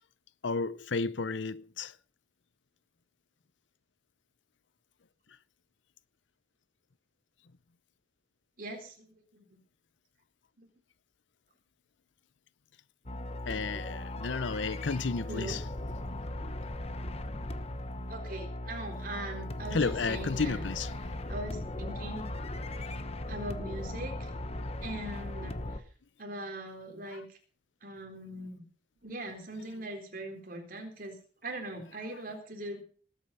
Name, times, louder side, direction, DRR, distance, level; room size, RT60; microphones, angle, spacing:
voice 1, 0.4-1.9 13.5-15.6 19.7-20.9 27.1-27.2, left 4 dB, 85° left, 0.7 m, -32 dB
voice 2, 8.6-9.4 10.6-10.7 15.3-15.6 18.1-20.7 21.3-22.3 23.3-24.3 24.8-25.6 26.2-27.2 27.8-28.6 29.0-31.1 31.4-32.8, right 1 dB, 50° right, 4.0 m, -40 dB
sound 1, 13.1-25.8, left 1 dB, 35° left, 1.0 m, -38 dB
19.5 x 8.9 x 5.6 m
head